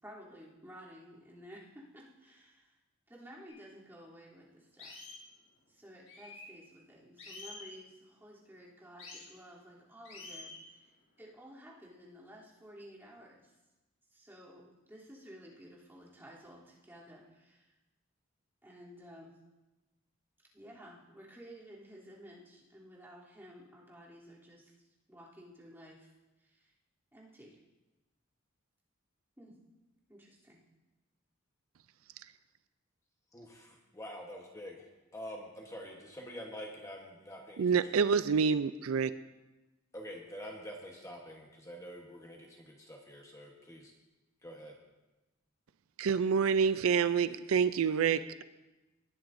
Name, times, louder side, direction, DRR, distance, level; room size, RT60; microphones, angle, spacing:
voice 1, 0.0-2.7 3.1-5.1 5.7-10.9 11.2-13.5 14.1-17.7 18.6-19.4 20.5-24.7 25.1-26.1 26.4-26.7 27.1-27.6 29.4-29.5 30.1-30.6, equal, 10° right, -7 dB, 3.1 m, -53 dB
sound 1, 3.5-3.6 4.1-4.2 4.8-5.2 6.1-6.5 7.2-7.7 9.0-9.3 10.0-10.6, left 3 dB, 65° left, 4.3 m, -48 dB
voice 2, 33.3-38.0 39.9-43.9 44.4-44.7, equal, 15° left, 0 dB, 1.1 m, -46 dB
voice 3, 37.6-39.1 46.0-48.4, right 6 dB, 90° right, 13 dB, 0.4 m, -27 dB
20.0 x 10.0 x 2.6 m, 1.1 s
head